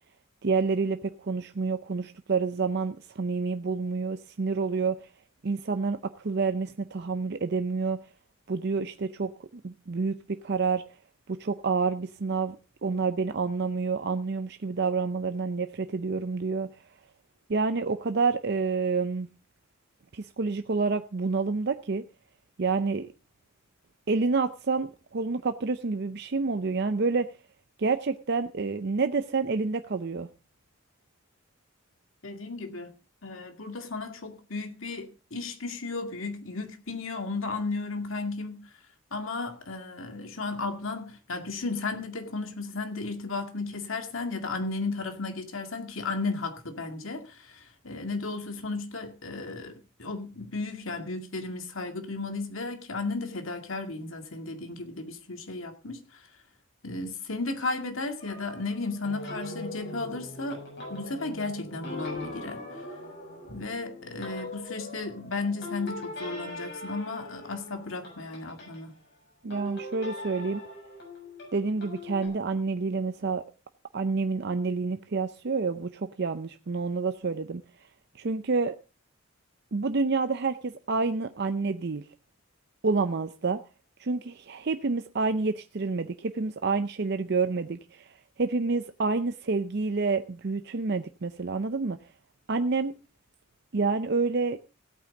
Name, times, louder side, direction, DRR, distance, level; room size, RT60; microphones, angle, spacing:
voice 1, 0.4-5.1 5.4-8.0 8.5-10.8 11.3-16.7 17.5-19.3 20.1-22.0 22.6-23.1 24.1-27.3 27.8-30.3 69.4-70.6 71.5-73.4 73.9-77.6 78.1-78.8 79.7-82.0 82.8-83.6 84.0-88.1 88.4-92.0 92.5-92.9 93.7-94.6, right 4 dB, 55° right, 0.6 m, -28 dB
voice 2, 32.2-32.9 33.2-38.6 39.1-56.2 56.8-60.6 60.9-62.6 63.4-68.9, left 3 dB, 75° left, 2.2 m, -34 dB
sound 1, 58.2-68.8 69.5-72.3, left 1 dB, 55° left, 6.9 m, -41 dB
17.0 x 8.7 x 3.7 m
head